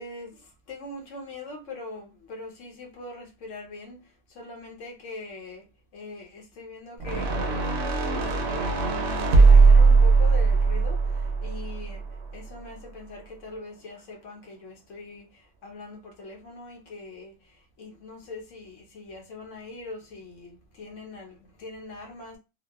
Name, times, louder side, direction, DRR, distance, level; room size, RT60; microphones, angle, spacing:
voice 1, 0.0-5.6 5.9-7.9 8.1-22.4, left 3 dB, 65° left, 1.0 m, -42 dB
sound 1, 7.0-12.3, right 4 dB, 60° right, 0.7 m, -19 dB
2.8 x 2.1 x 2.3 m
omnidirectional pair, 1.5 m